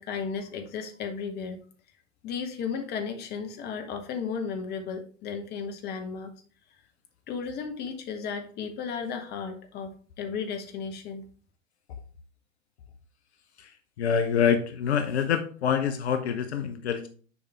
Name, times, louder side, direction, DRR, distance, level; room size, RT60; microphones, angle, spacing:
voice 1, 0.0-1.6 2.2-6.3 7.3-11.2, left 6 dB, 25° left, 6 dB, 1.0 m, -34 dB
voice 2, 13.6-17.1, left 7 dB, 60° left, 9 dB, 0.8 m, -26 dB
7.1 x 4.9 x 3.3 m, 0.41 s
figure-of-eight pair, 95°, 38 cm